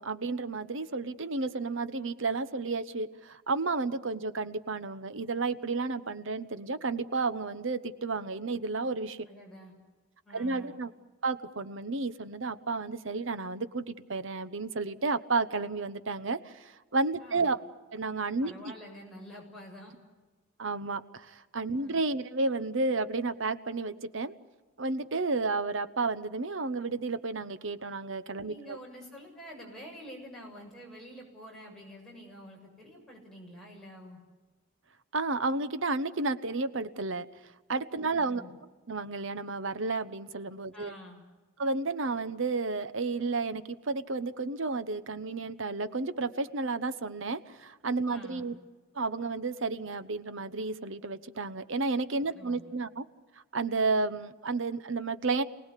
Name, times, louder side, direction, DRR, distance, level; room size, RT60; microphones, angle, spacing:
voice 1, 0.0-9.2 10.3-10.9 11.2-17.6 17.9-18.5 20.6-24.3 24.8-28.8 35.1-37.3 37.7-38.4 38.9-40.9 41.6-48.5 48.9-53.0 53.5-55.4, right 3 dB, 70° right, 13 dB, 1.1 m, -32 dB
voice 2, 9.3-9.7 10.3-10.7 17.2-17.5 18.4-19.9 21.8-22.0 28.4-34.2 38.1-38.5 40.7-41.2 48.1-48.6 52.3-52.7, equal, ahead, -2 dB, 7.1 m, -48 dB
27.5 x 19.0 x 8.4 m, 1.3 s
head